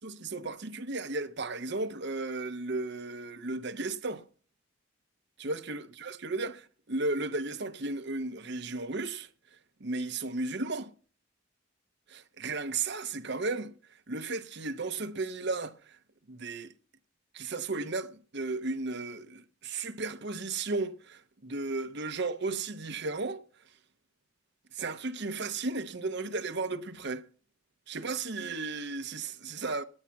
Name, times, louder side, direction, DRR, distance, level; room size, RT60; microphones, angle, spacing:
voice 1, 0.0-4.2 5.4-9.3 9.8-10.9 12.1-13.7 14.1-16.0 16.3-16.7 17.3-23.4 24.7-27.2 27.9-29.8, right 3 dB, 55° right, 0.9 m, -34 dB
9.9 x 8.8 x 7.1 m
head